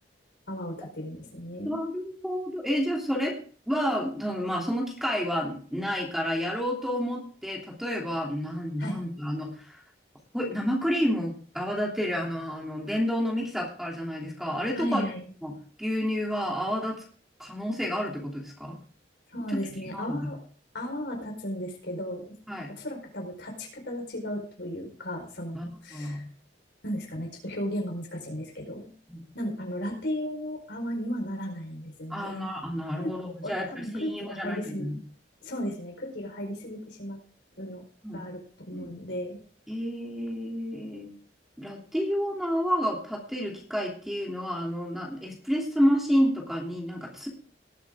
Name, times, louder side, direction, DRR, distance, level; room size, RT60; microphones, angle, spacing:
voice 1, 0.5-1.7 8.8-9.0 14.7-15.3 19.3-20.4 20.7-22.3 22.7-26.2 26.8-28.9 29.3-32.5 32.9-33.1 33.4-34.9 35.4-37.2 37.6-37.8 38.1-39.4, equal, 65° left, 2 dB, 4.6 m, -35 dB
voice 2, 1.6-3.3 3.7-9.8 10.3-15.1 15.4-17.0 17.4-18.7 19.5-19.6 19.9-20.3 22.5-22.7 25.5-26.3 29.1-29.2 32.1-35.0 38.0-38.2 38.7-38.9 39.7-41.1 41.6-47.3, equal, ahead, -1 dB, 3.0 m, -30 dB
19.5 x 8.2 x 3.7 m, 0.42 s
head